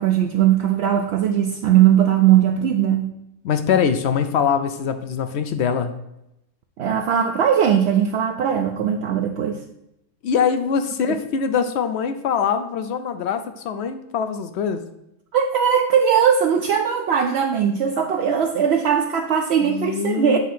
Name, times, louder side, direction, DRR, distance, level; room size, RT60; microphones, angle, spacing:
voice 1, 0.0-3.1 6.8-9.6 11.1-11.2 15.3-20.4, right 9 dB, 70° right, 3 dB, 0.6 m, -19 dB
voice 2, 3.4-5.9 10.2-14.8 19.6-20.4, left 7 dB, 70° left, 9 dB, 0.6 m, -23 dB
8.2 x 2.8 x 5.8 m, 0.84 s
omnidirectional pair, 1.6 m